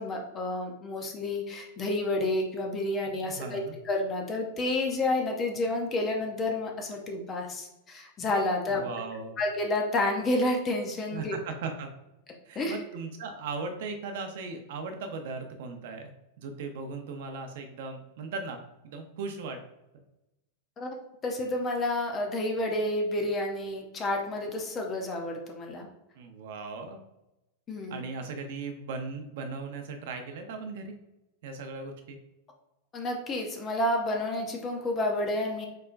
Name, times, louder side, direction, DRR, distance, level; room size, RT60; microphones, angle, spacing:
voice 1, 0.0-8.8 9.4-11.4 12.6-12.8 20.8-21.0 21.2-25.9 27.7-28.1 32.9-35.7, left 2 dB, 15° left, 2 dB, 0.6 m, -30 dB
voice 2, 3.1-3.7 8.7-9.4 11.1-11.9 12.5-16.1 16.4-19.6 26.2-27.0 27.9-30.9 31.4-32.2, right 4 dB, 55° right, 6 dB, 0.6 m, -38 dB
4.5 x 4.2 x 2.5 m, 0.92 s
supercardioid pair, 175°, 0 cm